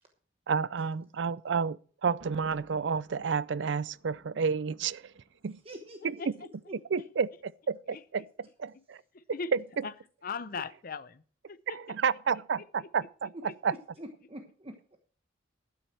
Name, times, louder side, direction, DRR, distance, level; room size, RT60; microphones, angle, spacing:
voice 1, 0.5-5.0 5.4-5.6 6.0-6.2 6.9-7.3 7.7-9.0 9.5-9.6 11.7-13.3 13.6-13.7, right 6 dB, 60° right, 0.4 m, -30 dB
Thunder, 2.0-5.9 6.2-6.3, right 2 dB, 85° right, 1.6 m, -55 dB
voice 2, 5.6-6.2 6.7-7.0 13.3-15.0, right 1 dB, 30° right, 1.1 m, -46 dB
voice 3, 9.1-9.5 9.8-9.9 10.2-11.2 11.5-12.0 12.6-12.9, left 5 dB, 45° left, 0.6 m, -39 dB
12.5 x 9.4 x 4.5 m
head